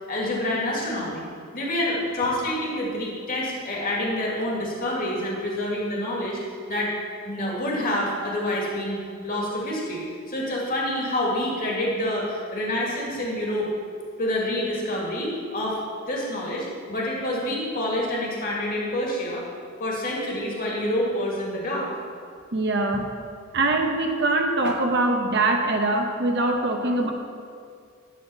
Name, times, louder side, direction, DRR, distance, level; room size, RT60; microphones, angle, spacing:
voice 1, 0.1-1.3 1.5-6.4 6.7-6.9 7.3-13.7 14.2-15.8 16.1-19.5 19.8-21.9, left 1 dB, 45° left, -3 dB, 2.1 m, -27 dB
voice 2, 22.5-23.1 23.5-27.1, right 2 dB, 55° right, 3 dB, 1.0 m, -23 dB
11.0 x 4.2 x 6.8 m, 2.2 s
head